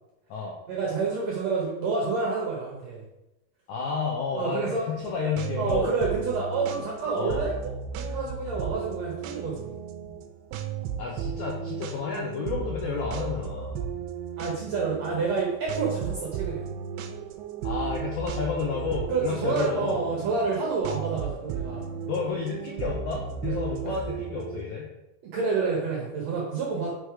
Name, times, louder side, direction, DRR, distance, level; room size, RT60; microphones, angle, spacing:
voice 1, 0.7-3.0 4.3-4.8 5.6-9.7 14.4-16.6 19.1-21.8 23.8-23.9 25.2-26.9, right 4 dB, 65° right, -2 dB, 1.7 m, -28 dB
voice 2, 3.7-5.9 7.1-7.4 11.0-13.8 17.6-19.9 22.1-24.9, left 5 dB, 80° left, -2 dB, 1.7 m, -31 dB
sound 1, 5.0-24.6, right 7 dB, 85° right, 2.7 m, -35 dB
6.4 x 4.7 x 4.7 m, 0.94 s
omnidirectional pair, 4.5 m